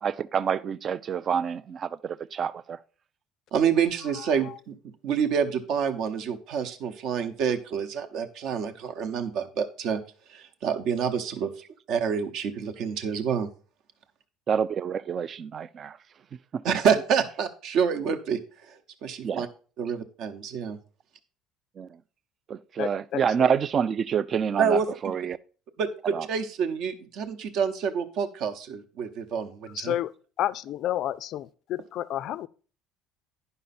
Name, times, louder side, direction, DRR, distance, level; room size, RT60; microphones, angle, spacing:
voice 1, 0.0-2.8 14.5-16.0 16.5-16.6 19.2-19.5 21.8-21.9 22.5-25.4 26.1-26.3, right 7 dB, 30° right, 0.3 m, -27 dB
voice 2, 3.5-4.8 5.0-10.0 10.3-11.5 11.9-13.5 16.6-19.5 19.8-20.8 24.6-24.9 25.8-30.0, right 7 dB, 55° right, 0.9 m, -27 dB
voice 3, 22.8-23.2 29.8-30.1 30.4-32.5, left 12 dB, 50° left, 0.4 m, -30 dB
10.5 x 5.5 x 4.2 m
cardioid pair, 160°, 0 cm